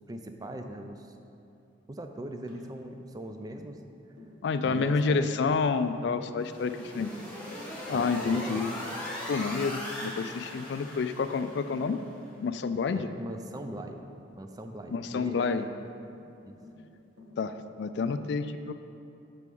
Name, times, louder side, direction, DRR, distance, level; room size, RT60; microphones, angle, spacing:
voice 1, 0.1-1.1 1.9-3.8 4.6-5.6 6.9-7.0 7.9-8.6 12.9-14.0 14.4-15.7 16.4-16.6, right 1 dB, 20° right, 5 dB, 0.4 m, -40 dB
Tap, 2.5-2.7 3.3-3.5 4.2-4.4 4.7-4.9 5.4-5.6 5.9-6.2 6.7-6.9 7.4-7.6 8.0-8.3 8.9-9.1 9.5-9.8 10.2-10.4 10.8-11.0 11.7-12.0 12.4-12.6 13.6-13.9 15.0-15.2 16.0-16.3 16.6-16.9 17.2-17.4, left 2 dB, 65° right, 1.5 m, -52 dB
voice 2, 4.4-7.1 7.9-8.7 9.3-12.0 12.4-13.1 14.9-15.7 17.4-18.7, left 4 dB, 60° left, 10 dB, 0.3 m, -29 dB
sound 1, 6.4-11.9, left 1 dB, 5° left, 1.3 m, -39 dB
6.7 x 4.8 x 5.3 m, 2.7 s
head